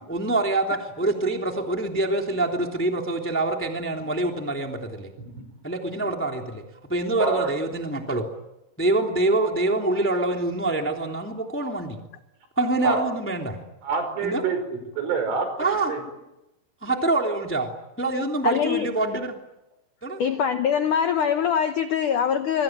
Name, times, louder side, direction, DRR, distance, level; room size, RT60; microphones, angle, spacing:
voice 1, 0.1-5.1 5.6-6.6 6.9-8.3 8.8-12.0 12.6-13.6 14.2-14.4 15.6-15.9 16.8-17.7 18.0-19.4 20.0-20.2, right 2 dB, 5° left, 1.9 m, -25 dB
voice 2, 7.2-7.5 12.8-13.0 13.8-16.0, right 4 dB, 85° right, 7.8 m, -27 dB
voice 3, 18.4-18.9 20.2-22.6, left 8 dB, 85° left, 1.7 m, -23 dB
26.5 x 23.5 x 9.1 m
omnidirectional pair, 5.5 m